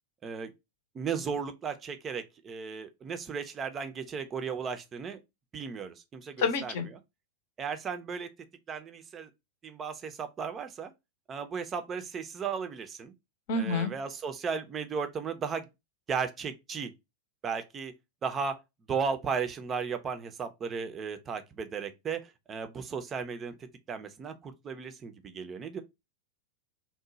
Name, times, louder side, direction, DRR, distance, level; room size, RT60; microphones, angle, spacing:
voice 1, 0.9-5.2 5.5-6.7 7.6-8.3 8.7-9.3 9.6-10.9 11.3-13.1 13.5-15.7 16.1-16.9 17.4-17.9 18.2-18.6 18.9-23.6 23.9-25.8, right 6 dB, 25° right, 0.5 m, -35 dB
voice 2, 6.4-6.9 13.5-13.9, left 4 dB, 50° left, 0.7 m, -28 dB
2.9 x 2.2 x 3.7 m
figure-of-eight pair, 90°, 0 cm